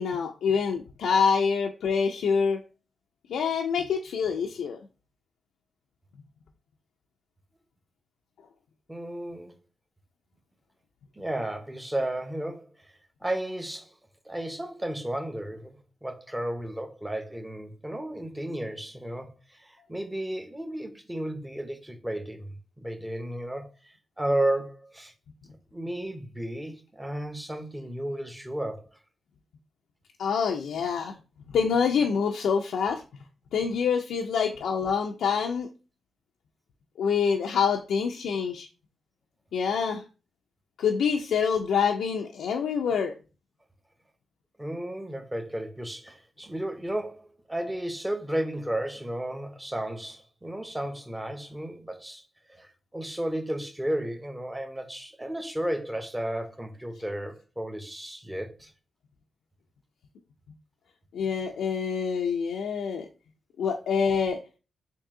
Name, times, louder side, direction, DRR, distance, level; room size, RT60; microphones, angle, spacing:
voice 1, 0.0-2.6 3.3-4.8 30.2-31.2 31.5-33.0 33.5-35.7 37.0-38.7 39.5-40.0 40.8-43.1 61.1-63.1 63.6-64.4, left 6 dB, 90° left, 0.3 m, -26 dB
voice 2, 8.9-9.5 11.2-12.9 13.2-14.0 14.2-25.1 25.7-28.8 44.6-52.2 52.5-58.7, right 1 dB, 15° right, 0.7 m, -33 dB
3.6 x 2.6 x 3.6 m
cardioid pair, 70°, 0 cm